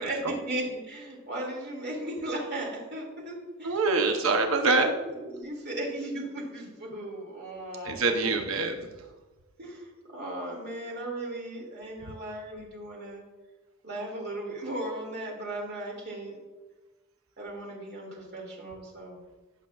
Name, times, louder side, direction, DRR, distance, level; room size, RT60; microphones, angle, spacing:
voice 1, 0.0-3.8 4.6-8.4 9.6-13.2 13.8-16.3 17.4-19.2, right 1 dB, 55° right, -1 dB, 2.3 m, -36 dB
voice 2, 3.6-4.9 7.8-8.9, right 3 dB, 70° right, 5 dB, 0.7 m, -25 dB
15.5 x 6.2 x 2.4 m, 1.2 s
head